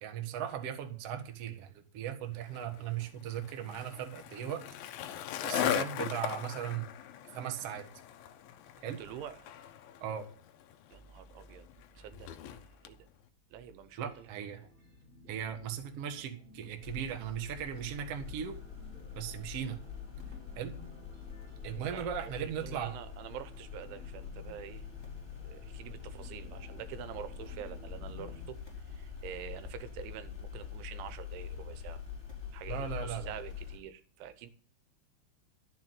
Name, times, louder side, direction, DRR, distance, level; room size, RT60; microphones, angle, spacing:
voice 1, 0.0-4.6 5.4-6.9 7.3-7.8 8.8-9.0 10.0-10.3 14.0-14.6 15.3-18.6 19.1-19.8 20.5-20.7 21.6-23.0 32.7-33.3, right 9 dB, 70° right, 1.4 m, -38 dB
Skateboard, 2.4-13.0, left 10 dB, 90° left, 2.0 m, -39 dB
voice 2, 9.0-9.5 10.9-11.7 12.0-13.0 13.5-14.3 14.6-14.7 21.8-24.9 25.4-32.0 32.5-34.5, right 9 dB, 85° right, 3.4 m, -46 dB
sound 1, 13.8-28.4, left 1 dB, 10° right, 4.3 m, -55 dB
sound 2, 16.8-33.8, left 7 dB, 5° left, 3.4 m, -45 dB
12.5 x 7.2 x 7.6 m
omnidirectional pair, 5.3 m